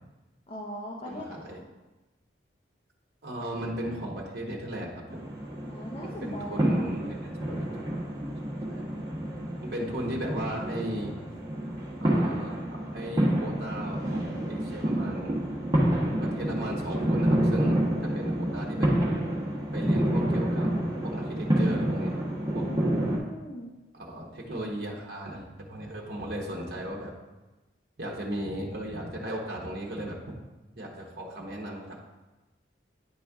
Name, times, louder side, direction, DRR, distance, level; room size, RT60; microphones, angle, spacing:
voice 1, 0.5-1.6 5.7-6.8 22.6-23.7, equal, 30° left, -2 dB, 0.7 m, -40 dB
voice 2, 1.1-1.6 3.2-5.2 6.0-7.3 8.7-8.9 9.6-11.2 12.0-15.4 16.2-18.9 19.7-20.7 21.0-22.2 22.5-22.7 23.9-27.1 28.0-30.2 30.8-32.0, right 1 dB, 55° right, -2 dB, 1.0 m, -36 dB
sound 1, 5.1-23.2, right 1 dB, 20° right, 1.1 m, -28 dB
9.5 x 4.2 x 3.5 m, 1.1 s
head